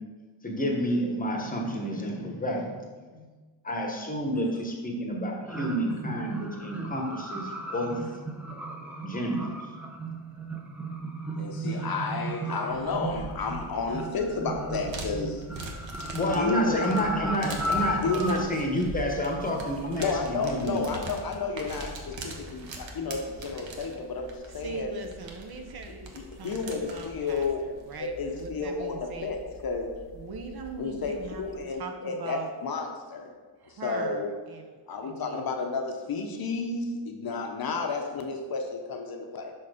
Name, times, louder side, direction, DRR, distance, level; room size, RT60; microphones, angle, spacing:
voice 1, 0.4-2.8 3.1-3.2 3.6-7.9 9.0-9.6 16.1-20.8, equal, 15° left, 0 dB, 1.1 m, -29 dB
sound 1, 5.5-18.4, right 1 dB, 5° right, 0.6 m, -35 dB
voice 2, 11.4-15.4 16.3-16.9 18.0-18.4 20.0-24.9 26.4-27.6 28.0-29.9 30.8-33.3 33.7-34.3 34.9-39.5, left 4 dB, 45° left, 3 dB, 0.8 m, -31 dB
sound 2, 12.7-31.7, right 2 dB, 65° right, 1.1 m, -43 dB
voice 3, 24.5-29.3 30.1-32.5 33.6-35.5, right 4 dB, 50° right, 5 dB, 0.7 m, -41 dB
5.7 x 4.3 x 5.0 m, 1.4 s
cardioid pair, 125°, 50 cm